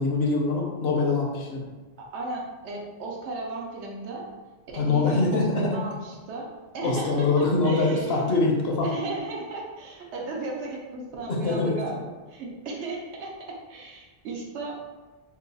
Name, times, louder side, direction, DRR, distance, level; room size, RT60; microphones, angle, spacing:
voice 1, 0.0-1.6 4.7-5.8 6.8-8.9 11.3-11.8, left 3 dB, 65° left, -1 dB, 0.8 m, -24 dB
voice 2, 2.0-4.3 4.7-6.5 6.7-8.3 8.8-14.8, right 3 dB, 80° right, -1 dB, 1.0 m, -35 dB
2.9 x 2.3 x 3.9 m, 1.2 s
omnidirectional pair, 1.1 m